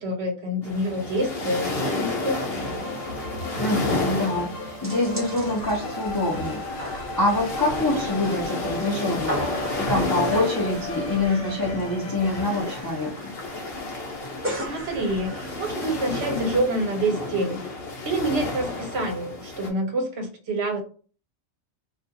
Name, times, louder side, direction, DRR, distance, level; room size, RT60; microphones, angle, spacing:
voice 1, 0.0-2.7 14.7-17.6 18.0-20.8, right 1 dB, 60° right, 3 dB, 0.8 m, -27 dB
sound 1, 0.6-19.7, left 2 dB, 55° left, 0.9 m, -32 dB
sound 2, 0.8-0.9 1.2-1.3 1.7-2.0 2.3-2.4 2.7-16.9, equal, 15° right, 0.5 m, -38 dB
sound 3, 1.7-12.4, left 2 dB, 80° left, 1.1 m, -36 dB
voice 2, 3.6-9.5 9.8-13.3, left 2 dB, 35° left, -3 dB, 0.3 m, -26 dB
2.4 x 2.3 x 2.6 m, 0.39 s
omnidirectional pair, 1.3 m